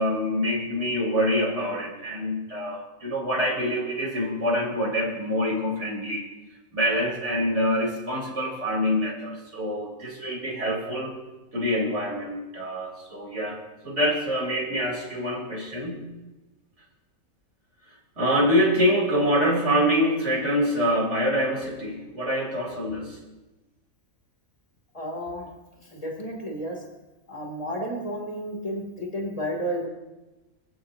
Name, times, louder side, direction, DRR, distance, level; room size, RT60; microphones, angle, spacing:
voice 1, 0.0-6.2 6.7-11.1 11.5-16.0 18.2-23.2, equal, 45° right, -2 dB, 4.6 m, -25 dB
voice 2, 24.9-25.5 25.9-26.8 27.3-29.9, equal, 20° left, 0 dB, 3.3 m, -32 dB
25.5 x 15.5 x 2.9 m, 1.1 s
omnidirectional pair, 1.6 m